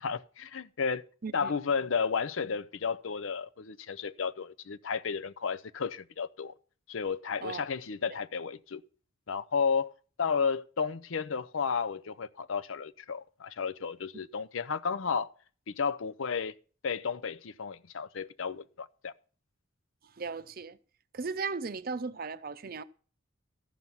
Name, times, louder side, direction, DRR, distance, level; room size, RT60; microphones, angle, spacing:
voice 1, 0.0-1.0 1.3-6.5 6.9-8.8 9.3-9.9 10.2-15.3 15.7-16.5 16.8-19.1, left 5 dB, 75° left, 0.6 m, -32 dB
voice 2, 1.2-1.5 7.4-7.6 20.2-20.8 21.1-22.8, right 4 dB, 45° right, 0.6 m, -36 dB
14.0 x 6.1 x 5.5 m
head